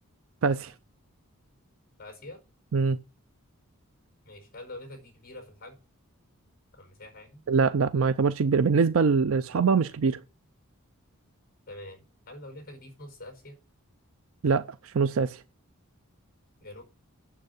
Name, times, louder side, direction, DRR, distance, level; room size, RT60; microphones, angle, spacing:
voice 1, 0.4-0.7 2.7-3.0 7.5-10.2 14.4-15.4, right 5 dB, 60° right, 0.5 m, -23 dB
voice 2, 2.0-2.4 4.2-5.8 6.7-7.4 11.7-13.6 16.6-16.8, left 1 dB, 40° left, 4.5 m, -45 dB
8.9 x 7.4 x 8.0 m
head